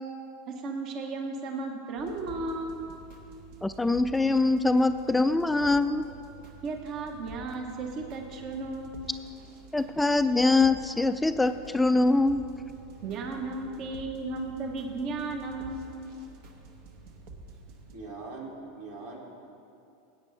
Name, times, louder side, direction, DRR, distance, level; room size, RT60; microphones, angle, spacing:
voice 1, 0.5-3.0 6.6-9.1 13.0-16.0, right 3 dB, 50° right, 3 dB, 1.2 m, -35 dB
sound 1, 2.0-18.0, right 3 dB, 65° right, 1.1 m, -49 dB
voice 2, 3.6-6.1 9.7-12.4, left 2 dB, 10° left, 10 dB, 0.3 m, -23 dB
voice 3, 17.9-19.2, right 3 dB, 80° right, -2 dB, 2.2 m, -41 dB
15.5 x 8.4 x 3.3 m, 2.6 s
hypercardioid pair, 100°, 0 cm